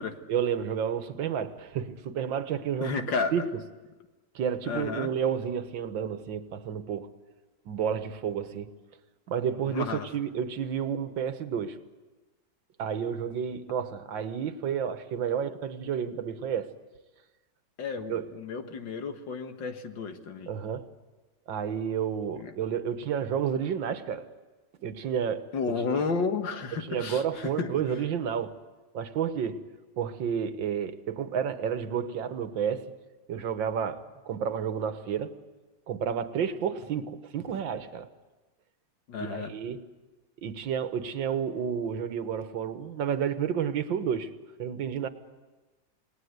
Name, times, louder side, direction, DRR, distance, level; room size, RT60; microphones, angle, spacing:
voice 1, 0.3-3.5 4.4-7.1 7.7-8.7 9.3-11.8 12.8-16.7 18.1-18.3 20.5-20.9 21.5-24.3 24.8-26.0 26.8-28.6 28.9-29.6 30.0-32.8 33.3-35.3 35.9-38.1 39.2-39.9 40.4-44.3 44.6-45.1, right 8 dB, 85° right, 1.9 m, -31 dB
voice 2, 2.8-3.5 4.7-5.1 9.7-10.1 17.8-20.5 22.3-22.5 25.5-27.7 39.1-39.5, left 5 dB, 75° left, 2.2 m, -32 dB
28.5 x 19.0 x 8.1 m
omnidirectional pair, 2.0 m